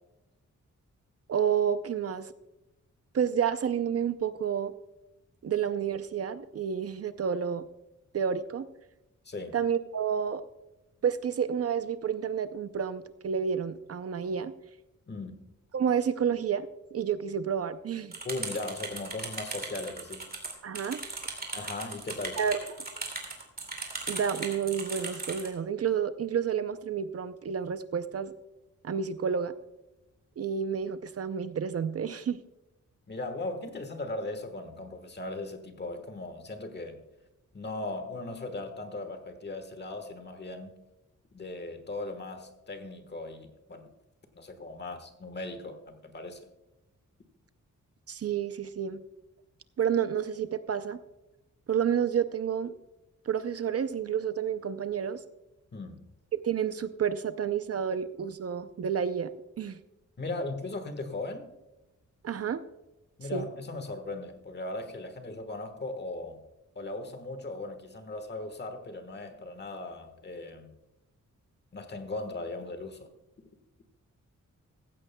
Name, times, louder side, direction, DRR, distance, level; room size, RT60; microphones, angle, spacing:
voice 1, 1.3-2.3 3.1-4.7 5.4-7.7 8.1-8.7 9.5-10.4 11.0-14.5 15.7-18.1 20.6-21.0 22.4-22.6 24.1-28.3 28.8-29.5 30.4-32.4 48.1-49.0 49.8-51.0 51.7-52.8 53.3-55.2 56.3-59.3 59.6-59.8 62.2-62.6 63.3-63.4, right 7 dB, 50° right, 12 dB, 0.5 m, -30 dB
voice 2, 9.2-9.6 15.1-15.4 18.2-20.3 21.5-22.4 33.1-37.0 37.5-40.8 41.3-43.9 44.3-46.4 55.7-56.0 60.2-61.5 63.2-66.4 66.7-70.7 71.7-73.1, left 2 dB, 35° left, 8 dB, 1.4 m, -38 dB
sound 1, 18.1-25.5, right 3 dB, 30° right, 2.4 m, -38 dB
15.0 x 15.0 x 2.2 m, 0.98 s
wide cardioid pair, 170°, 31 cm